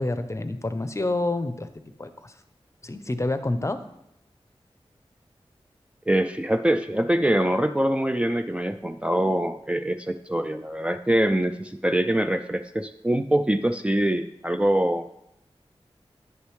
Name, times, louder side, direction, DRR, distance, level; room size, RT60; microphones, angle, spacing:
voice 1, 0.0-1.7 2.0-2.3 2.8-3.8, left 2 dB, 30° left, 10 dB, 0.6 m, -28 dB
voice 2, 6.1-15.1, right 1 dB, 10° right, 6 dB, 0.3 m, -24 dB
9.1 x 6.4 x 3.2 m, 0.81 s
wide cardioid pair, 55°, 10 cm